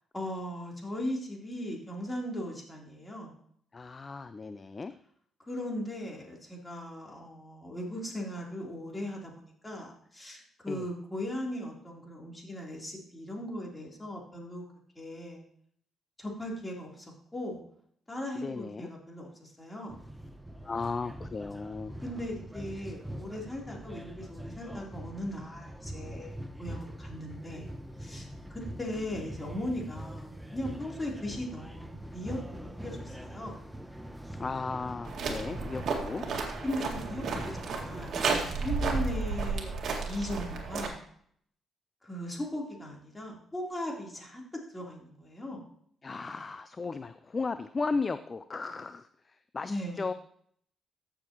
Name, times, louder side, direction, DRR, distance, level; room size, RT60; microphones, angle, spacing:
voice 1, 0.1-3.3 5.5-14.6 15.0-15.4 16.2-17.6 18.1-20.0 22.0-27.7 28.0-33.6 36.6-41.0 42.0-45.7 49.7-50.0, left 1 dB, 20° left, -2 dB, 3.5 m, -38 dB
voice 2, 3.7-4.9 10.7-10.9 18.4-18.9 20.6-22.0 34.4-36.3 46.0-50.1, left 4 dB, 35° left, 12 dB, 0.4 m, -35 dB
sound 1, 19.9-38.2, right 1 dB, 5° right, 0.8 m, -43 dB
sound 2, 35.0-40.9, right 4 dB, 60° right, 1.9 m, -32 dB
14.5 x 6.9 x 3.0 m, 0.63 s
supercardioid pair, 70°, 0 cm